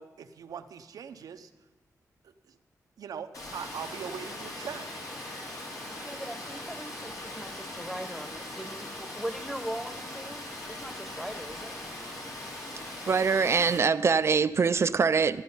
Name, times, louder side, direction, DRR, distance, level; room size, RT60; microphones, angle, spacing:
voice 1, 0.0-1.5 2.2-2.6 3.0-4.9, right 7 dB, 90° right, 8 dB, 0.8 m, -41 dB
Water, 3.3-13.8, left 1 dB, 70° left, 3.3 m, -40 dB
voice 2, 6.0-11.7, equal, ahead, 8 dB, 1.1 m, -40 dB
voice 3, 13.1-15.4, right 5 dB, 45° right, 13 dB, 0.4 m, -23 dB
13.0 x 11.5 x 5.4 m, 1.1 s
cardioid pair, 90°, 6 cm